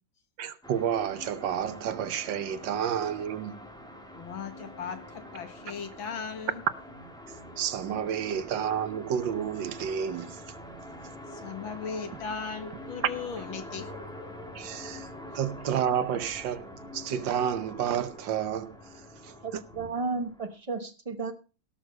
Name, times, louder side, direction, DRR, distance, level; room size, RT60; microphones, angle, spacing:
voice 1, 0.4-3.6 7.6-10.4 14.5-15.1 15.3-18.8 19.2-19.6, right 9 dB, 70° right, 1.6 m, -30 dB
sound 1, 0.6-20.6, left 1 dB, ahead, 1.6 m, -45 dB
voice 2, 4.2-6.6 11.3-13.9, left 6 dB, 80° left, 2.4 m, -37 dB
sound 2, 7.2-10.7 12.8-17.4 19.7-19.9, left 2 dB, 35° left, 1.8 m, -52 dB
voice 3, 19.4-21.3, right 4 dB, 35° right, 0.5 m, -33 dB
17.0 x 6.5 x 5.3 m
omnidirectional pair, 2.1 m